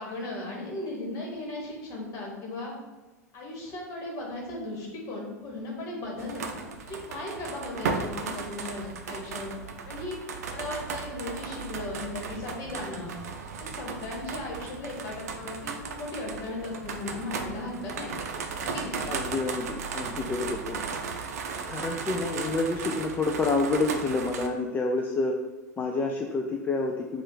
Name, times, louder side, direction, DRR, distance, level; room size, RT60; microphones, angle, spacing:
voice 1, 0.0-2.7 3.3-10.2 10.5-13.1 13.6-18.1 18.6-19.0, left 2 dB, 40° left, -1 dB, 1.5 m, -37 dB
sound 1, 6.2-24.5, right 5 dB, 65° right, 0.5 m, -36 dB
voice 2, 19.1-20.8 21.7-25.4 25.8-27.2, left 3 dB, 20° left, 2 dB, 0.4 m, -28 dB
5.2 x 2.4 x 3.7 m, 1.2 s
figure-of-eight pair, 85°, 9 cm